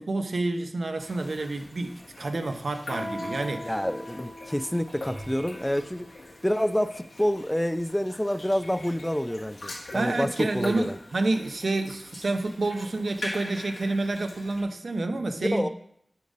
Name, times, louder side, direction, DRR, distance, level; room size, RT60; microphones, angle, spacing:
voice 1, 0.0-3.7 9.9-15.7, right 2 dB, 70° right, 7 dB, 0.7 m, -29 dB
sound 1, 1.0-14.6, left 2 dB, 90° left, 1.8 m, -43 dB
Guitar, 2.9-8.3, left 1 dB, 70° left, 2.3 m, -42 dB
voice 2, 3.6-6.1 6.4-11.0 15.4-15.7, equal, 10° left, 11 dB, 0.4 m, -28 dB
sound 2, 4.9-7.2 7.9-8.3 8.7-8.8 13.2-13.3, right 1 dB, 25° right, 1.0 m, -48 dB
8.4 x 5.1 x 4.0 m, 0.71 s
wide cardioid pair, 65°, 0 cm